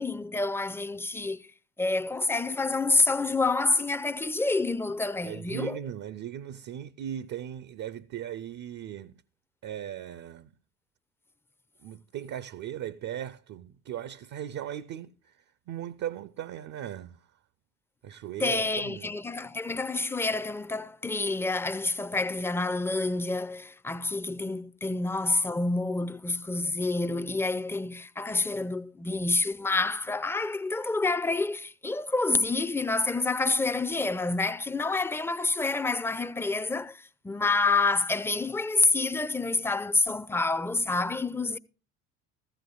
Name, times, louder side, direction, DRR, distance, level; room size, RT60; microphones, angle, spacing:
voice 1, 0.0-1.4 1.8-5.8 18.4-41.6, left 3 dB, 5° left, 0.5 m, -28 dB
voice 2, 5.2-9.2 9.6-10.5 11.8-17.2 18.0-19.1, right 10 dB, 40° right, 0.7 m, -38 dB
15.0 x 15.0 x 2.3 m
figure-of-eight pair, 60°, 46 cm